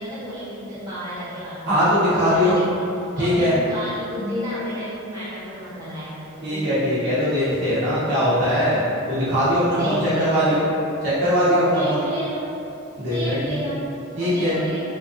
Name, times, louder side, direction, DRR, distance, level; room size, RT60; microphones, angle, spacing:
voice 1, 0.0-2.9 3.1-6.8 9.8-10.4 11.7-12.5 13.0-14.8, equal, 15° right, -12 dB, 1.2 m, -32 dB
voice 2, 1.7-2.6 3.2-3.6 6.4-8.8 9.1-10.6 11.0-12.0 13.0-13.6 14.1-14.6, equal, 50° right, -12 dB, 0.9 m, -20 dB
4.5 x 2.3 x 2.6 m, 2.8 s
head